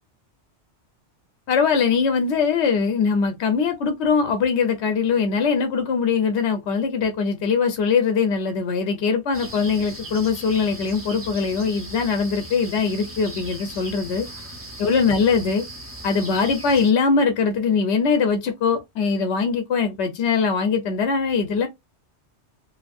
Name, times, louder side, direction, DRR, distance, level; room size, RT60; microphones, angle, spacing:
voice 1, 1.5-14.3 14.8-15.6 16.0-21.7, left 5 dB, 75° left, 0.9 m, -21 dB
sound 1, 9.3-16.9, right 1 dB, 15° right, 0.6 m, -38 dB
2.7 x 2.5 x 2.3 m
omnidirectional pair, 1.2 m